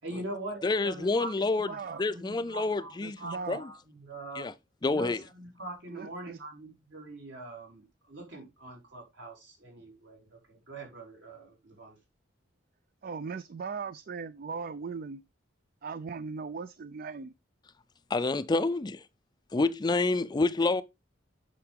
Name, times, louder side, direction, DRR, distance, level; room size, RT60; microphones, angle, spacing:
voice 1, 0.0-4.5 4.9-12.0, right 2 dB, 70° right, 4.3 m, -43 dB
voice 2, 0.6-1.7 2.0-3.2 3.5-3.6 4.4-4.5 4.8-5.2 18.1-19.0 19.5-20.8, left 3 dB, 20° left, 0.4 m, -28 dB
voice 3, 1.7-2.0 3.0-3.6 5.9-6.4 13.0-15.2 15.8-17.3, right 5 dB, 50° right, 0.4 m, -38 dB
8.6 x 5.9 x 3.6 m
head